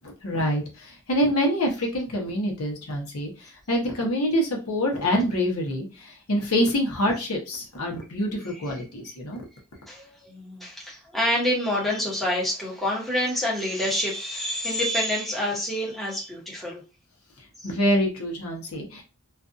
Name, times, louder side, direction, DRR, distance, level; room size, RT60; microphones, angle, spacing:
voice 1, 0.0-9.4 17.6-19.0, equal, 90° left, 1 dB, 0.9 m, -26 dB
voice 2, 9.9-16.8 17.6-17.7, left 1 dB, ahead, -5 dB, 0.8 m, -27 dB
2.5 x 2.3 x 2.5 m, 0.30 s
head